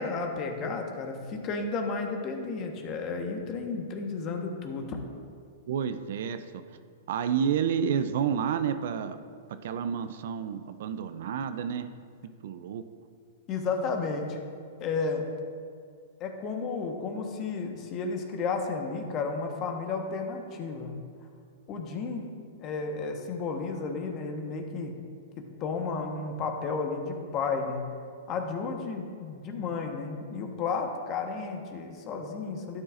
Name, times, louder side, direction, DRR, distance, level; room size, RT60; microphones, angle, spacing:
voice 1, 0.0-5.0 13.5-14.4 14.8-15.2 16.2-20.9 21.7-22.3 22.6-24.9 25.4-27.9 28.3-32.8, left 4 dB, 35° left, 3 dB, 1.3 m, -32 dB
voice 2, 5.7-6.6 7.1-9.2 9.5-11.9 12.4-12.8, right 8 dB, 65° right, 10 dB, 0.5 m, -30 dB
11.5 x 9.7 x 2.6 m, 2.2 s
hypercardioid pair, 125°, 0 cm